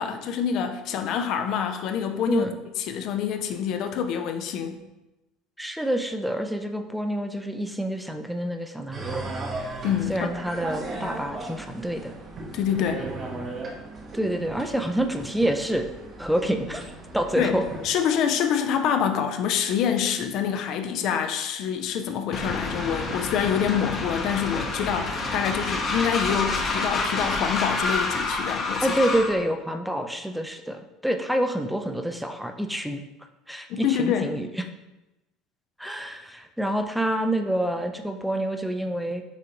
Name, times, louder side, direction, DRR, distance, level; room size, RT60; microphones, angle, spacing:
voice 1, 0.0-2.4 2.9-4.8 9.8-10.3 12.5-13.0 17.4-17.6 17.8-28.9 33.7-34.3, left 8 dB, 60° left, 7 dB, 0.4 m, -26 dB
voice 2, 2.3-2.6 5.6-9.3 10.1-12.1 14.1-15.9 16.2-16.9 17.1-17.6 28.8-33.0 33.5-34.6 35.8-39.2, right 1 dB, ahead, 6 dB, 0.4 m, -27 dB
sound 1, 8.9-17.9, right 2 dB, 35° right, 0.8 m, -36 dB
Train, 22.3-29.4, left 3 dB, 35° left, 0.8 m, -28 dB
6.8 x 2.5 x 2.9 m, 0.99 s
supercardioid pair, 85°, 0 cm